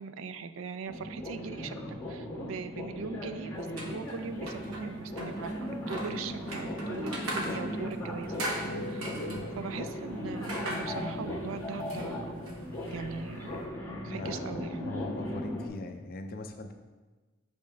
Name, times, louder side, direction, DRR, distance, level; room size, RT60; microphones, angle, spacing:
voice 1, 0.0-1.8 2.1-8.4 8.8-9.2 9.6-12.4 12.9-13.6 14.0-15.1, right 5 dB, 70° right, 10 dB, 0.4 m, -40 dB
sound 1, 0.9-15.7, left 1 dB, 10° left, 1.6 m, -37 dB
sound 2, 3.6-13.7, right 1 dB, 90° right, 0.9 m, -42 dB
voice 2, 14.0-16.7, left 2 dB, 45° left, 5 dB, 0.5 m, -41 dB
6.4 x 5.2 x 3.4 m, 1.3 s
head